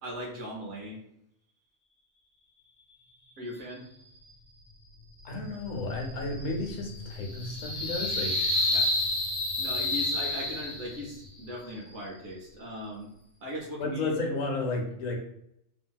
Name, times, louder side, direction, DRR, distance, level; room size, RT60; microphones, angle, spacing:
voice 1, 0.0-1.0 3.4-3.8 8.7-8.9 9.6-13.1 13.4-14.1, equal, 70° right, -3 dB, 1.1 m, -38 dB
voice 2, 5.2-8.3 13.8-15.1, left 2 dB, 85° left, 1 dB, 1.1 m, -32 dB
sound 1, 5.2-11.1, left 2 dB, 55° left, 1.1 m, -30 dB
2.8 x 2.6 x 2.2 m, 0.77 s
omnidirectional pair, 1.3 m